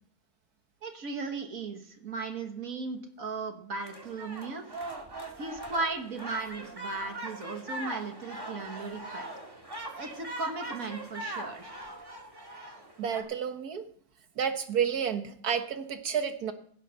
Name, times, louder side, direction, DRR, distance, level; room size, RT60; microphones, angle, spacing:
voice 1, 0.8-4.6 5.4-9.3 9.9-11.7, right 3 dB, 65° right, 5 dB, 1.9 m, -36 dB
sound 1, 3.8-13.2, right 1 dB, 15° right, 2.0 m, -41 dB
voice 2, 13.0-13.8 14.4-16.5, right 7 dB, 85° right, 8 dB, 1.8 m, -30 dB
16.5 x 8.3 x 5.5 m, 0.63 s
omnidirectional pair, 1.6 m